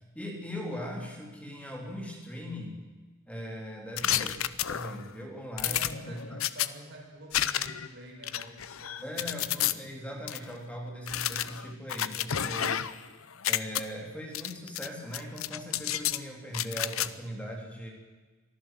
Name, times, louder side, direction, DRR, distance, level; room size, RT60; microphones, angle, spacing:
voice 1, 0.1-2.8 3.3-4.4 4.7-5.8 6.1-6.4 9.0-12.9 13.5-17.9, equal, 5° left, 0 dB, 3.9 m, -39 dB
sound 1, 4.0-5.1 5.6-6.7 7.3-7.9 8.2-9.7 10.3-10.4 11.1-13.0 13.3-13.8 14.3-14.9 15.1-16.2 16.5-17.1, left 11 dB, 80° left, 0.8 m, -30 dB
voice 2, 5.6-9.7, right 1 dB, 60° right, 1 dB, 5.6 m, -48 dB
23.5 x 14.5 x 7.9 m, 1.3 s
head